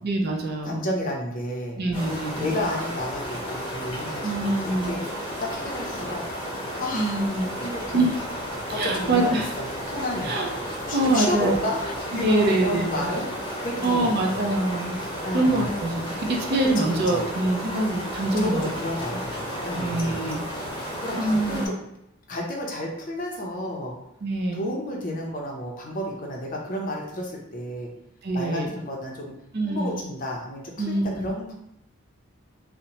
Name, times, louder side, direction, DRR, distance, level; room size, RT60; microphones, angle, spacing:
voice 1, 0.0-0.9 1.8-2.5 4.2-5.0 6.9-7.5 7.9-8.1 8.7-9.5 10.2-10.5 10.9-11.6 12.1-13.1 13.8-15.0 15.3-18.7 19.1-19.2 19.8-20.4 21.2-21.7 24.2-24.6 28.2-28.7 29.5-30.0 30.8-31.3, right 2 dB, 50° right, 1 dB, 0.4 m, -24 dB
voice 2, 0.6-1.8 2.3-6.5 6.8-7.3 7.6-8.0 8.7-9.2 9.6-10.3 10.9-13.3 13.6-14.4 15.2-15.7 16.8-17.2 18.4-20.4 21.0-21.8 22.3-24.0 24.5-27.9 28.3-29.3 29.6-31.5, left 1 dB, 40° left, -1 dB, 0.5 m, -31 dB
sound 1, 1.9-21.7, equal, 25° left, 0.9 m, -33 dB
2.8 x 2.0 x 2.7 m, 0.80 s
head